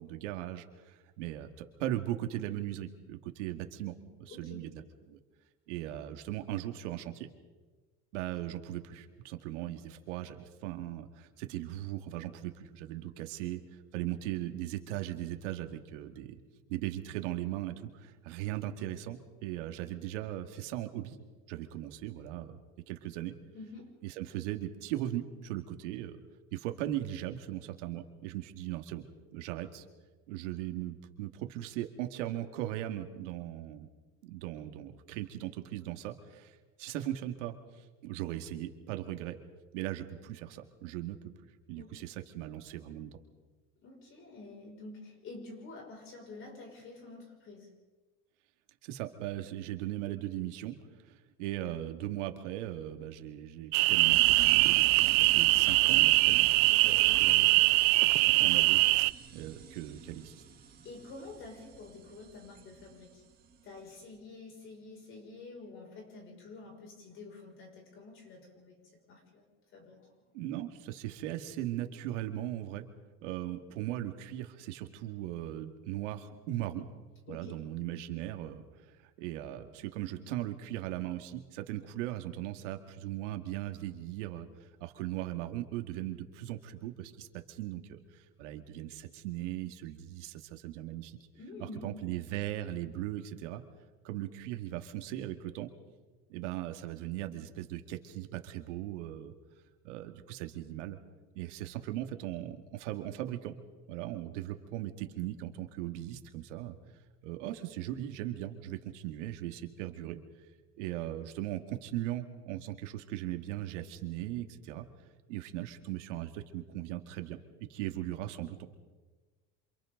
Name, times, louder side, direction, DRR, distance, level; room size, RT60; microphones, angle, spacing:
voice 1, 0.0-3.9 4.2-5.2 5.7-7.3 8.1-16.4 16.7-21.2 21.5-22.6 22.9-23.3 24.0-26.2 26.5-29.0 29.3-29.9 30.3-33.9 34.2-39.4 39.7-41.2 41.7-43.2 48.8-56.5 56.8-57.5 58.2-60.4 70.3-72.9 73.2-76.8 77.3-91.2 91.8-93.6 94.0-95.7 96.3-99.3 99.8-101.0 101.4-103.5 103.9-106.8 107.2-110.2 110.8-114.9 115.3-118.7, right 13 dB, 85° right, 6 dB, 2.2 m, -38 dB
voice 2, 4.3-4.6 23.5-23.9 41.7-42.0 43.8-47.7 56.7-57.3 60.8-63.2 63.6-69.4 69.7-70.1 77.3-77.6 91.3-92.0, left 3 dB, 35° left, 1 dB, 6.3 m, -48 dB
sound 1, 53.7-59.1, right 24 dB, 55° right, 0.6 m, -23 dB
sound 2, 54.1-64.0, right 6 dB, 25° right, 2.7 m, -48 dB
28.5 x 27.0 x 3.9 m, 1.3 s
cardioid pair, 160°, 36 cm